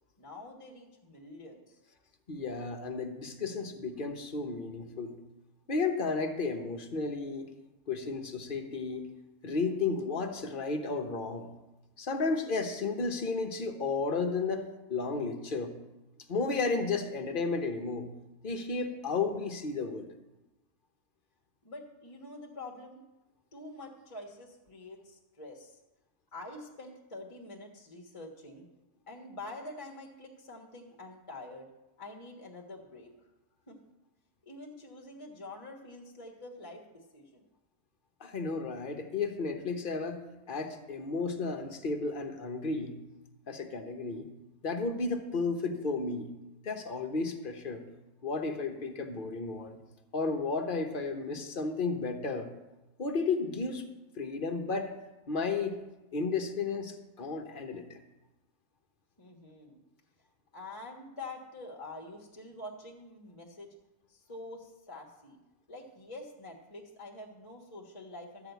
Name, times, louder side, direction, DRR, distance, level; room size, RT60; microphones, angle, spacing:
voice 1, 0.2-1.8 21.6-23.0 23.5-25.8 26.3-28.6 29.1-31.7 32.0-33.1 33.7-33.8 34.4-37.5 59.2-59.8 60.5-63.7 64.1-65.4 65.7-68.5, left 2 dB, 25° left, -1 dB, 1.3 m, -46 dB
voice 2, 2.3-5.2 5.7-7.5 7.9-9.0 9.4-11.5 12.0-15.7 16.3-18.1 18.4-20.1 38.2-42.9 43.5-44.3 44.6-46.3 46.6-47.8 48.2-49.8 50.1-52.5 53.0-53.8 54.2-54.9 55.3-55.8 56.1-58.0, left 4 dB, 40° left, 5 dB, 1.0 m, -33 dB
12.5 x 4.9 x 8.1 m, 1.0 s
omnidirectional pair, 1.5 m